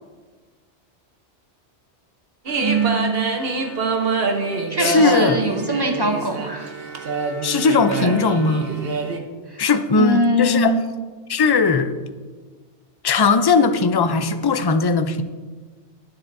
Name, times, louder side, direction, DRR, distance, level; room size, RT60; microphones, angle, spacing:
sound 1, 2.5-9.2, right 4 dB, 55° right, 1.2 m, -25 dB
voice 1, 2.6-3.3 4.7-6.7 10.0-10.8, right 1 dB, 25° right, 5 dB, 0.7 m, -22 dB
voice 2, 4.8-5.4 7.4-8.7 9.6-10.8 11.3-11.9 13.0-15.2, left 4 dB, 35° left, 9 dB, 0.3 m, -18 dB
21.5 x 7.9 x 2.7 m, 1.4 s
omnidirectional pair, 1.2 m